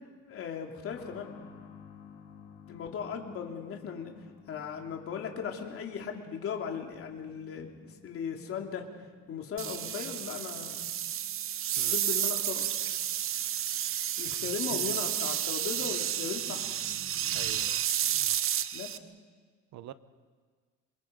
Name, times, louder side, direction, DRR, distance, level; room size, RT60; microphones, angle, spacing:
voice 1, 0.2-1.3 2.7-4.1 4.5-8.9 9.3-10.9 11.9-12.7 14.2-16.7 18.7-18.9, left 7 dB, 50° left, 2 dB, 3.0 m, -37 dB
sound 1, 0.9-15.4 15.6-15.7 16.7-16.8, left 7 dB, 90° left, 3.0 m, -56 dB
sound 2, 9.6-19.0, right 10 dB, 45° right, 0.9 m, -31 dB
voice 2, 14.4-15.0 17.3-17.8 19.7-19.9, right 12 dB, 70° right, 13 dB, 1.0 m, -45 dB
27.5 x 23.0 x 5.3 m, 1.5 s
cardioid pair, 145°, 29 cm